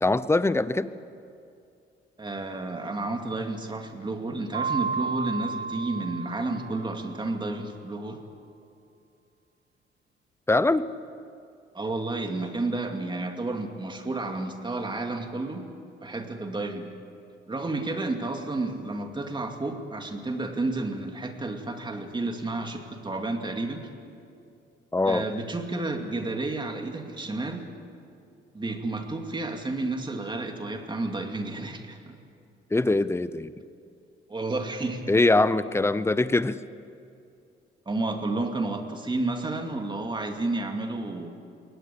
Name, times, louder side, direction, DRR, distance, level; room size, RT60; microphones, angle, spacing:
voice 1, 0.0-0.9 10.5-10.9 24.9-25.3 32.7-33.5 35.1-36.6, left 2 dB, 15° left, 15 dB, 0.7 m, -22 dB
voice 2, 2.2-8.2 11.7-15.7 16.0-16.9 17.5-23.9 25.0-27.7 28.5-32.1 34.3-35.1 37.9-41.3, right 2 dB, 25° right, 4 dB, 2.4 m, -31 dB
Mallet percussion, 4.5-7.2, right 5 dB, 60° right, 1.8 m, -32 dB
22.0 x 18.5 x 8.6 m, 2.5 s
cardioid pair, 90°, 20 cm